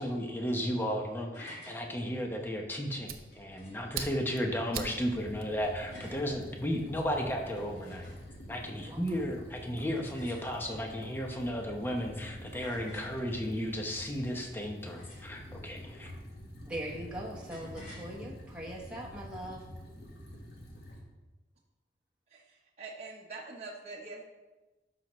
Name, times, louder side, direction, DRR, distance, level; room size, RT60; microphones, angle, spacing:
voice 1, 0.0-8.1 8.5-16.1, equal, 10° left, 1 dB, 0.9 m, -34 dB
sound 1, 1.3-1.8 3.3-3.9 5.9-6.3 7.4-8.4 9.9-10.8 12.6-13.2 14.9-15.5 17.5-18.1, left 1 dB, 80° left, 3.1 m, -51 dB
Fire, 2.4-7.0, right 7 dB, 55° right, 0.6 m, -45 dB
sound 2, 4.7-21.0, left 1 dB, 60° left, 1.6 m, -47 dB
voice 2, 16.6-19.6, right 1 dB, 5° right, -4 dB, 1.2 m, -41 dB
voice 3, 22.3-24.2, right 3 dB, 35° right, -4 dB, 1.0 m, -44 dB
12.5 x 6.0 x 3.2 m, 1.1 s
head